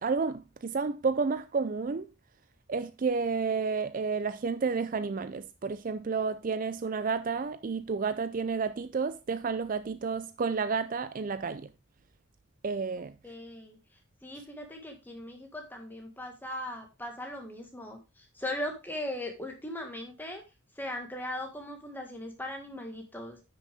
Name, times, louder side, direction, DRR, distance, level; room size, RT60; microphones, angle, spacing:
voice 1, 0.0-2.1 2.7-11.7 12.6-13.1, right 5 dB, 40° right, 0.4 m, -31 dB
voice 2, 13.0-13.8 14.2-20.4 20.8-23.4, left 1 dB, 10° left, 1.7 m, -39 dB
9.9 x 6.3 x 3.5 m
head